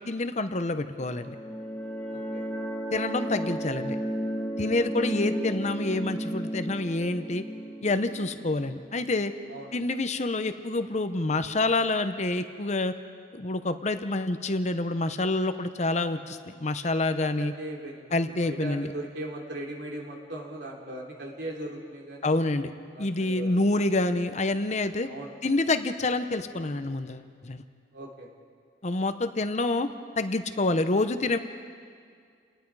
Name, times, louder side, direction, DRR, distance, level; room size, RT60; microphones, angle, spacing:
voice 1, 0.0-1.4 2.9-4.0 4.6-7.4 7.8-9.3 9.7-12.9 13.3-17.5 18.1-18.9 22.2-22.7 23.0-25.1 25.4-27.6 28.8-29.9 30.2-31.4, left 2 dB, 40° left, 10 dB, 0.8 m, -27 dB
sound 1, 1.0-9.6, equal, 10° left, 1.8 m, -34 dB
voice 2, 2.1-2.4 9.5-9.7 17.2-18.1 18.4-22.4 22.9-23.6 25.0-25.3 27.9-28.3, right 1 dB, 65° right, -1 dB, 3.4 m, -39 dB
29.5 x 19.5 x 4.8 m, 2.1 s
head